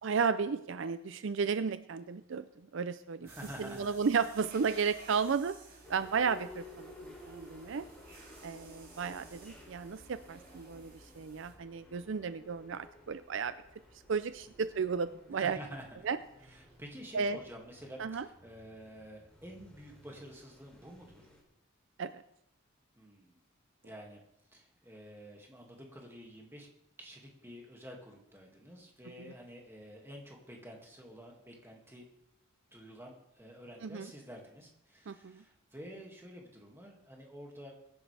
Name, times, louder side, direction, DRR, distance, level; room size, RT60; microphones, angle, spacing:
voice 1, 0.0-2.4 2.7-3.3 3.6-5.5 5.9-7.9 8.4-13.5 14.1-15.6 16.0-16.2 17.1-17.4 18.0-18.3 22.0-22.1 29.2-29.3 33.8-34.1 35.1-35.4, right 5 dB, 60° right, 12 dB, 0.4 m, -33 dB
voice 2, 3.2-4.0 15.3-16.1 16.5-21.3 23.0-23.4 23.8-24.2 24.5-26.7 27.0-32.1 32.7-37.7, equal, 10° right, -1 dB, 2.1 m, -49 dB
sound 1, 3.3-11.5, right 3 dB, 45° right, 4.3 m, -56 dB
sound 2, 5.8-21.4, left 1 dB, 5° left, 3.1 m, -55 dB
22.0 x 10.5 x 3.4 m, 0.80 s
head